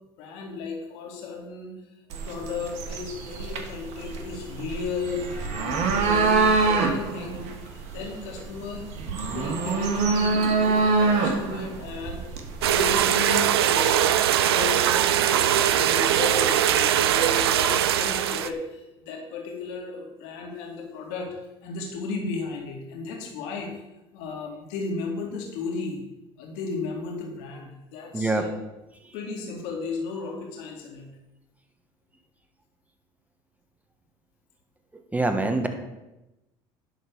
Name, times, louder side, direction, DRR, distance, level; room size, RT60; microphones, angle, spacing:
voice 1, 0.2-1.8 2.2-8.8 9.2-12.3 12.6-14.1 14.4-21.3 21.6-23.7 24.1-26.0 26.4-28.5 29.1-31.1, left 4 dB, 75° left, 0 dB, 2.4 m, -34 dB
sound 1, 2.1-12.9, right 4 dB, 65° right, 1.7 m, -25 dB
sound 2, 12.6-18.5, right 10 dB, 90° right, 0.5 m, -21 dB
voice 2, 35.1-35.7, right 2 dB, 10° right, 6 dB, 1.6 m, -24 dB
11.0 x 4.1 x 7.1 m, 0.98 s
hypercardioid pair, 70°, 13 cm